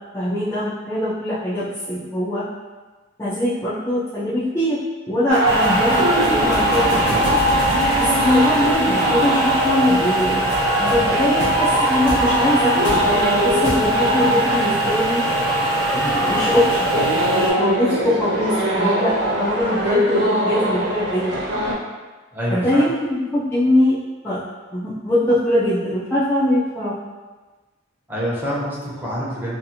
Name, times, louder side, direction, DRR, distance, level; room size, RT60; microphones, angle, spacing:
voice 1, 0.1-2.5 3.2-4.8 5.1-7.1 8.0-10.4 10.8-15.2 15.9-21.4 22.5-22.9 23.3-24.0 24.2-24.4 24.7-27.0, left 1 dB, 15° left, -10 dB, 0.3 m, -22 dB
sound 1, 5.3-14.2, left 1 dB, 75° left, 0.8 m, -32 dB
sound 2, 5.3-21.7, right 1 dB, 60° right, 0.5 m, -22 dB
sound 3, 5.4-17.5, right 1 dB, 75° right, 1.0 m, -23 dB
voice 2, 22.3-22.9 28.1-29.6, equal, 10° right, -8 dB, 0.7 m, -26 dB
2.6 x 2.4 x 2.7 m, 1.3 s
head